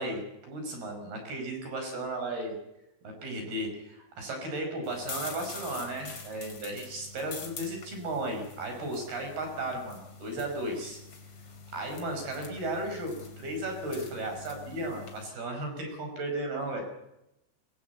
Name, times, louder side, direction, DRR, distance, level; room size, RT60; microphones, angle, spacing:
voice 1, 0.0-2.6 3.2-11.0 11.7-16.8, right 1 dB, 55° right, 4 dB, 7.1 m, -35 dB
sound 1, 4.8-15.3, left 4 dB, 35° left, 3.4 m, -45 dB
23.0 x 22.0 x 8.3 m, 0.87 s
omnidirectional pair, 5.5 m